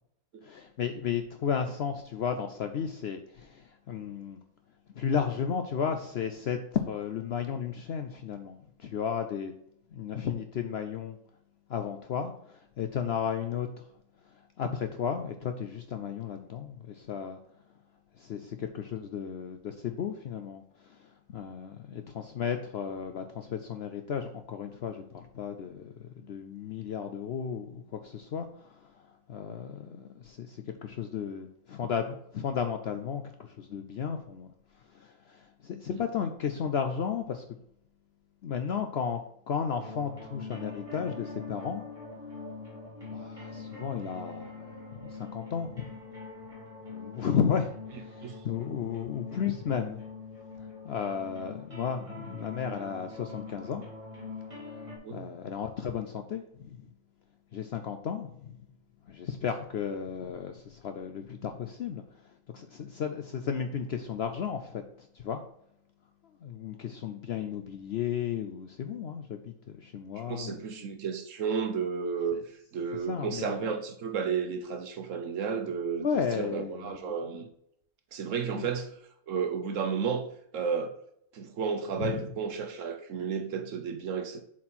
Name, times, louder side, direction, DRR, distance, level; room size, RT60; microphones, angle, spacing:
voice 1, 0.4-4.4 5.0-9.5 9.9-11.2 11.7-13.7 14.6-17.4 18.2-34.5 34.9-37.4 38.4-39.2 39.5-41.8 43.1-45.9 46.9-50.0 50.8-53.9 55.1-56.9 57.5-58.6 59.1-62.0 62.5-65.4 66.4-70.6 73.1-73.6 76.0-77.0 77.3-77.4 78.6-78.7 82.0-82.2, left 7 dB, 60° left, 0.7 m, -34 dB
sound 1, 39.7-55.0, left 3 dB, 25° right, 2.0 m, -43 dB
voice 2, 70.3-72.4 72.7-77.5 78.1-78.9 79.3-80.3 80.5-80.9 81.3-84.4, right 6 dB, 65° right, 1.1 m, -32 dB
7.3 x 4.3 x 4.3 m
omnidirectional pair, 1.5 m